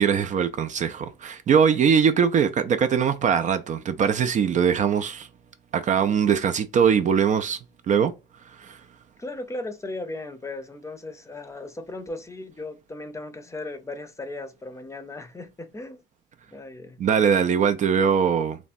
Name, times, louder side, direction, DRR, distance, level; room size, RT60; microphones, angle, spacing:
voice 1, 0.0-5.3 5.7-7.6 7.9-8.1 8.6-8.8 17.0-18.6, right 7 dB, 45° right, 0.4 m, -21 dB
voice 2, 9.2-16.0 16.5-17.0, left 2 dB, 15° left, 0.6 m, -37 dB
3.3 x 2.0 x 2.5 m
cardioid pair, 85°, 18 cm